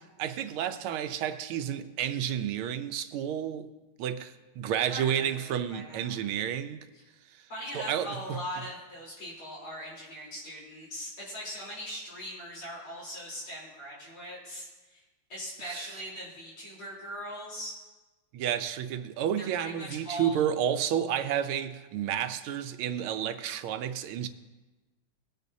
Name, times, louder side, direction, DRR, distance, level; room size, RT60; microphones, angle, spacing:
voice 1, 0.2-3.7 4.0-6.8 7.7-8.4 15.7-15.9 18.3-24.3, right 9 dB, 90° right, 1.5 m, -31 dB
voice 2, 4.9-6.2 6.9-7.0 7.5-15.0 15.3-17.7 19.4-20.5, equal, 85° left, 4.5 m, -40 dB
19.5 x 9.1 x 2.7 m
omnidirectional pair, 2.3 m